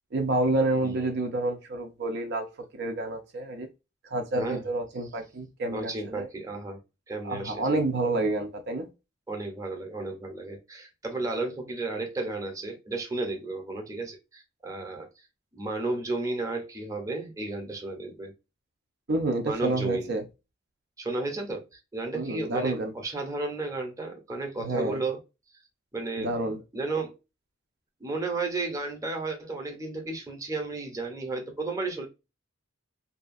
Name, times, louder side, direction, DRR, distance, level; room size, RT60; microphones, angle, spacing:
voice 1, 0.1-2.5 2.7-3.7 4.0-6.3 7.2-8.9 19.1-20.2 22.1-22.9 24.6-25.0 26.2-26.6, right 2 dB, 55° right, 0.5 m, -28 dB
voice 2, 4.3-4.6 5.7-6.8 7.1-7.8 9.3-15.2 15.5-18.3 19.4-20.1 21.0-25.2 25.9-26.3 26.7-27.2 28.0-32.1, right 3 dB, 15° right, 0.7 m, -33 dB
2.7 x 2.3 x 2.5 m
head